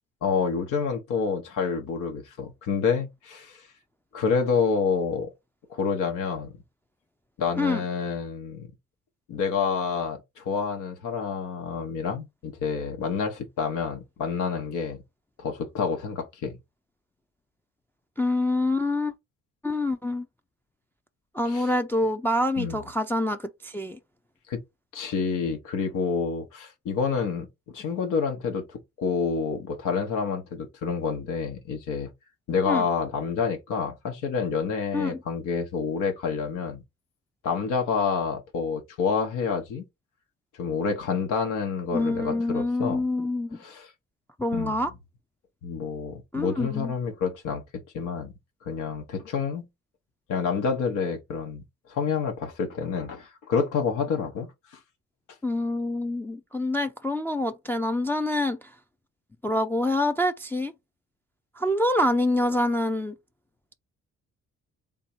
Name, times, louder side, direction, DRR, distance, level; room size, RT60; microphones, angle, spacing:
voice 1, 0.2-3.6 4.1-5.3 5.7-6.6 7.4-8.7 9.3-15.0 15.4-16.6 21.4-21.7 22.6-22.8 24.5-24.6 24.9-27.5 27.7-32.1 32.5-36.8 37.4-39.8 40.6-43.0 43.6-43.9 44.5-44.8 45.6-47.6 47.9-48.3 48.6-49.6 50.3-51.6 51.9-54.5, left 5 dB, 85° left, 1.1 m, -28 dB
voice 2, 18.2-19.1 19.6-20.3 21.3-24.0 32.7-32.9 34.9-35.2 41.9-43.6 44.4-44.9 46.3-46.9 55.4-58.6 59.4-60.7 61.6-63.1, left 1 dB, 5° left, 0.4 m, -26 dB
3.7 x 2.6 x 4.3 m
cardioid pair, 90°, 30 cm